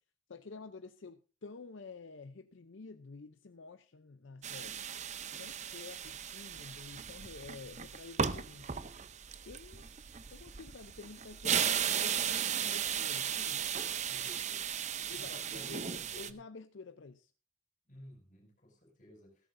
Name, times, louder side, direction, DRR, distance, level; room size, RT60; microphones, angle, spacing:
voice 1, 0.3-4.9 5.4-8.7 9.4-9.9 10.3-13.6 15.1-17.3, left 4 dB, 70° left, 0.6 m, -50 dB
sound 1, 4.4-16.3, right 8 dB, 35° right, 0.6 m, -36 dB
voice 2, 14.1-14.7 15.0-16.3 17.9-19.3, left 1 dB, 40° left, 5.2 m, -54 dB
16.0 x 13.5 x 2.6 m
head